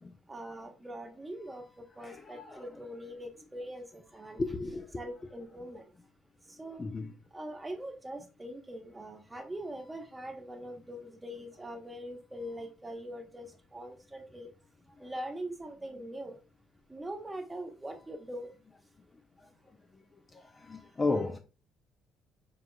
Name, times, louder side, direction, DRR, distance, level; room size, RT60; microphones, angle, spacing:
voice 1, 0.3-1.6 2.0-4.4 5.0-5.8 6.6-6.8 7.3-13.5 13.7-14.5 15.0-16.4 16.9-18.5, right 1 dB, 15° right, 0.9 m, -42 dB
voice 2, 2.0-2.7 4.4-5.0 6.8-7.2 19.4-19.5 19.9-20.0 20.3-21.4, left 3 dB, 25° left, 0.4 m, -34 dB
4.7 x 3.7 x 2.2 m
cardioid pair, 115°, 0 cm